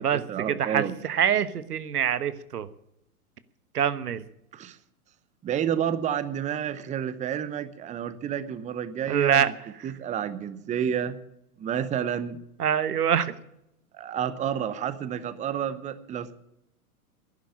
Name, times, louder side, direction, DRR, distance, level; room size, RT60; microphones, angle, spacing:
voice 1, 0.0-0.9 4.5-4.8 5.4-9.5 9.8-11.2 11.6-12.4 13.9-16.3, right 9 dB, 15° right, 14 dB, 0.8 m, -30 dB
voice 2, 0.6-2.7 3.7-4.2 9.1-9.5 12.6-13.3, right 9 dB, 85° right, 14 dB, 1.2 m, -24 dB
11.5 x 10.5 x 9.8 m, 0.82 s
hypercardioid pair, 115°, 45 cm